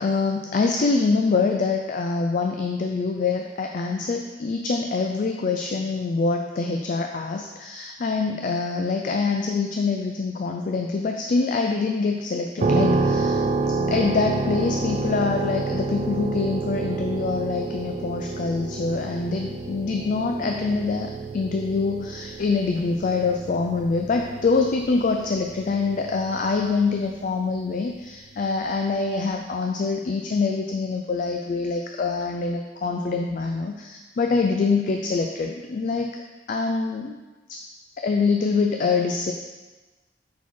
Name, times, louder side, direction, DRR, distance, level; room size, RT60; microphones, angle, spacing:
voice 1, 0.0-13.4 13.9-36.2 36.5-37.1 37.5-37.6 38.0-39.3, left 4 dB, 45° left, 3 dB, 0.3 m, -25 dB
sound 1, 12.6-27.3, right 3 dB, 40° right, 0.3 m, -29 dB
5.6 x 4.1 x 4.5 m, 1.2 s
head